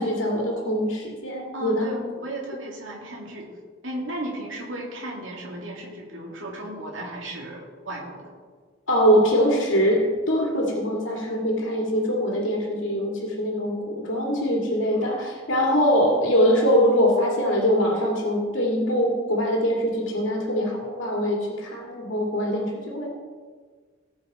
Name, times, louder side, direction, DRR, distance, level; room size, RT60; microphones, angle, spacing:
voice 1, 0.0-2.0 8.9-23.1, equal, 75° left, -1 dB, 2.4 m, -23 dB
voice 2, 1.5-3.5 3.8-8.3, right 1 dB, 80° right, -2 dB, 2.2 m, -35 dB
18.5 x 6.4 x 4.3 m, 1.5 s
head